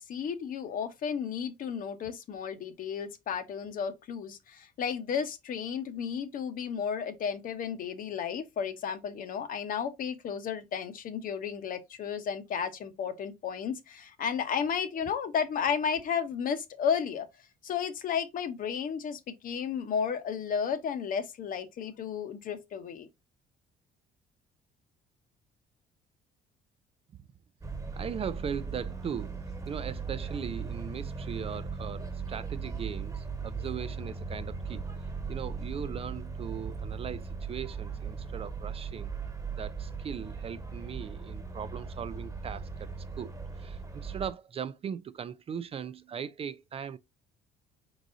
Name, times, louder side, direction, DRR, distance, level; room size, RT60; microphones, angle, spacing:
voice 1, 0.1-17.3 17.6-23.1, left 7 dB, 55° left, 0.9 m, -33 dB
sound 1, 27.6-44.3, right 5 dB, 20° right, 1.4 m, -38 dB
voice 2, 27.9-34.9 35.3-39.1 39.6-42.9 43.1-47.0, right 7 dB, 35° right, 0.4 m, -39 dB
4.7 x 4.0 x 2.6 m
cardioid pair, 110°, 17 cm